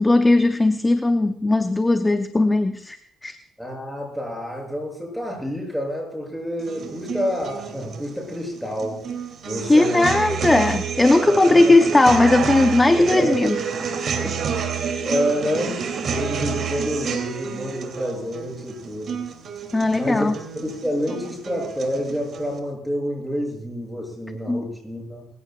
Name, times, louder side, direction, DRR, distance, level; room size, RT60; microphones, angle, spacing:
voice 1, 0.0-3.4 9.7-13.6 19.7-20.4 24.5-24.7, left 2 dB, 20° left, 8 dB, 0.8 m, -18 dB
voice 2, 3.6-9.1 9.4-10.1 11.2-11.8 13.0-13.3 14.2-14.4 15.0-19.2 19.9-20.3 20.6-25.3, equal, ahead, 0 dB, 7.6 m, -28 dB
sound 1, 6.6-22.6, right 6 dB, 60° right, 2.9 m, -29 dB
24.5 x 16.0 x 2.4 m, 0.67 s
cardioid pair, 90°, 0 cm